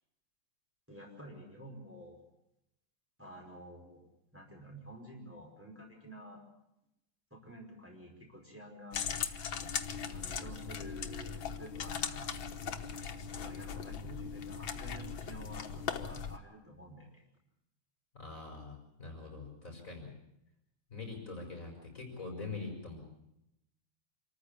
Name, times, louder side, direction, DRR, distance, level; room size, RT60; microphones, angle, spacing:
voice 1, 0.9-2.2 3.2-4.0 4.3-6.4 7.3-9.0 10.1-12.4 13.3-17.2, right 1 dB, 5° right, -1 dB, 5.1 m, -50 dB
sound 1, 8.9-16.4, left 7 dB, 80° left, 2.0 m, -39 dB
voice 2, 18.1-20.1 20.9-23.0, left 3 dB, 40° left, 2 dB, 5.4 m, -44 dB
27.0 x 14.5 x 8.4 m, 0.83 s
omnidirectional pair, 2.1 m